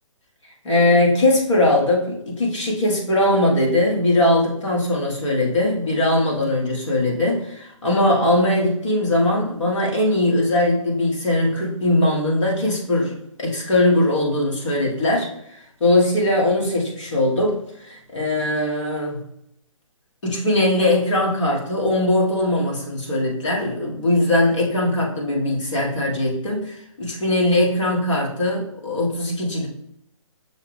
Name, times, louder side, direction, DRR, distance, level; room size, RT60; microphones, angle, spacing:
voice 1, 0.6-15.3 15.8-17.6 17.8-19.2 20.2-29.7, left 1 dB, 65° left, -2 dB, 1.7 m, -20 dB
6.4 x 2.4 x 3.4 m, 0.75 s
figure-of-eight pair, 135°, 17 cm